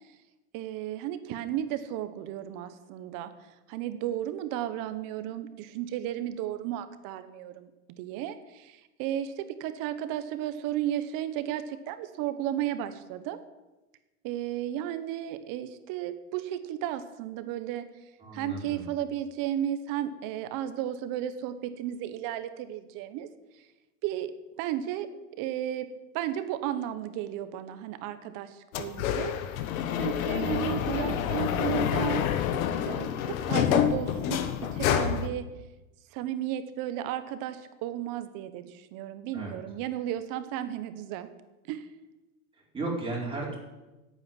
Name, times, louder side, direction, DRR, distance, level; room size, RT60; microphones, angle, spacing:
voice 1, 0.5-13.4 14.2-17.9 18.3-23.3 24.0-25.1 25.4-25.9 26.1-29.3 29.9-32.3 32.9-34.4 34.7-35.5 36.1-41.3 41.7-41.9, right 11 dB, 50° right, 11 dB, 1.4 m, -34 dB
voice 2, 18.2-18.9 39.3-39.6 42.5-43.6, right 2 dB, 10° right, -4 dB, 5.1 m, -35 dB
sound 1, 28.7-35.3, left 9 dB, 75° left, 1.4 m, -28 dB
10.5 x 8.9 x 9.5 m, 1.1 s
supercardioid pair, 135°, 42 cm